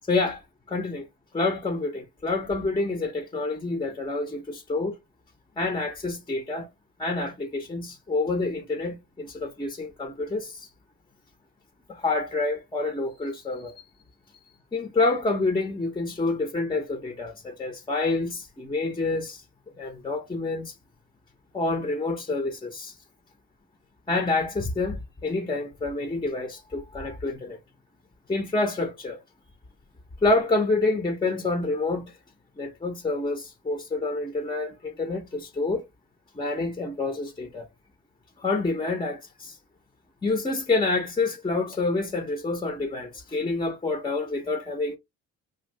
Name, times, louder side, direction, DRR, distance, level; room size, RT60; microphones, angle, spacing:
voice 1, 0.1-0.4 0.7-1.1 1.3-4.4 4.7-5.0 5.6-6.7 7.0-10.7 11.9-13.7 14.7-19.4 19.8-20.7 21.5-22.9 24.1-27.6 28.3-29.2 30.2-32.1 32.6-35.8 36.4-37.7 38.4-39.6 40.2-45.0, left 3 dB, 15° left, 0.5 m, -27 dB
2.6 x 2.3 x 3.1 m
cardioid pair, 90°, 30 cm